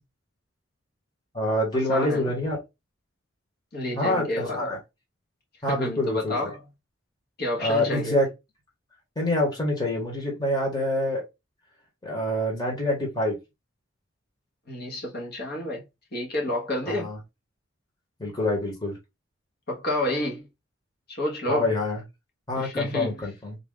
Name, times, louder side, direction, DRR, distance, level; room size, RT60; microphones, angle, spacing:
voice 1, 1.3-2.6 4.0-4.8 5.6-6.5 7.6-8.3 9.2-11.2 12.0-13.4 16.9-17.2 18.2-18.9 21.5-22.0 22.5-23.6, left 1 dB, 20° left, 1.3 m, -26 dB
voice 2, 1.9-2.3 3.7-4.7 5.6-6.6 7.4-8.1 14.7-15.8 16.1-17.1 19.7-20.5 21.1-21.7 22.6-23.3, left 1 dB, 50° left, 1.2 m, -29 dB
3.9 x 2.4 x 3.7 m
head